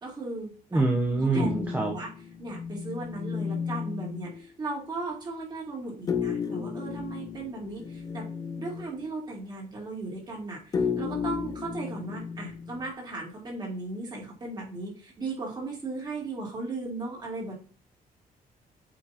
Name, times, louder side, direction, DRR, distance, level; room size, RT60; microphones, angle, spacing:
voice 1, 0.0-0.8 1.2-2.1 2.4-8.3 8.6-17.5, right 3 dB, 30° right, -2 dB, 2.9 m, -37 dB
voice 2, 0.7-1.9, right 2 dB, 10° right, 0 dB, 0.8 m, -25 dB
sound 1, 1.3-4.5 6.1-9.0 10.7-12.9, left 6 dB, 25° left, 0.4 m, -33 dB
8.4 x 5.2 x 2.9 m, 0.39 s
cardioid pair, 175°, 15 cm